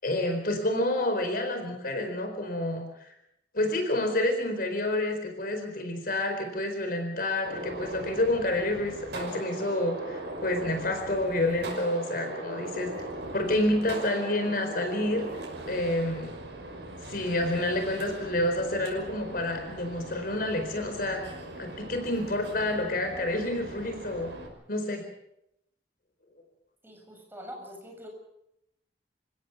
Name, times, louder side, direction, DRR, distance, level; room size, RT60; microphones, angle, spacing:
voice 1, 0.0-2.8 3.5-12.9 13.3-16.3 17.1-21.2 21.6-24.3 24.7-25.0, left 1 dB, 55° left, 6 dB, 4.4 m, -29 dB
Gunshot gunfire, 7.4-24.5, right 1 dB, 70° right, 6.1 m, -40 dB
voice 2, 26.8-28.1, equal, 15° right, 1 dB, 7.6 m, -44 dB
28.5 x 17.0 x 7.2 m, 0.82 s
head